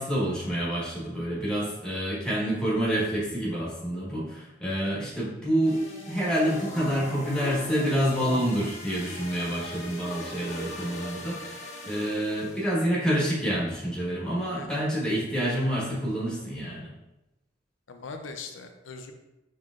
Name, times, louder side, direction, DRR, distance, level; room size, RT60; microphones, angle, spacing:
voice 1, 0.0-5.8 6.1-16.9, equal, 5° left, -7 dB, 1.2 m, -28 dB
sound 1, 5.6-12.7, equal, 40° left, 1.0 m, -40 dB
voice 2, 14.5-14.8 17.9-19.1, left 4 dB, 90° left, 5 dB, 0.5 m, -41 dB
5.5 x 3.2 x 2.4 m, 0.96 s
head